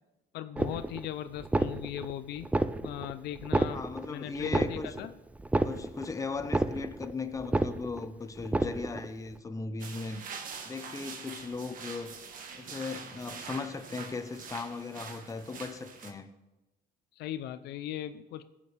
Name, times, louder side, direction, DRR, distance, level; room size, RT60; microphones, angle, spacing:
voice 1, 0.3-2.5 2.8-3.8 4.1-5.1 17.2-18.4, left 12 dB, 75° left, 0.5 m, -38 dB
sound 1, 0.6-1.1 1.4-2.1 2.4-3.1 3.4-4.1 4.4-5.1 5.4-6.1 6.4-7.1 7.4-8.1 8.4-9.1, right 2 dB, 10° right, 0.3 m, -30 dB
voice 2, 3.7-5.0 5.6-10.2 10.6-12.2 12.5-16.3, left 4 dB, 20° left, 0.7 m, -38 dB
sound 2, 9.8-16.1, right 5 dB, 55° right, 1.4 m, -44 dB
17.5 x 7.4 x 3.4 m
cardioid pair, 110°, 17 cm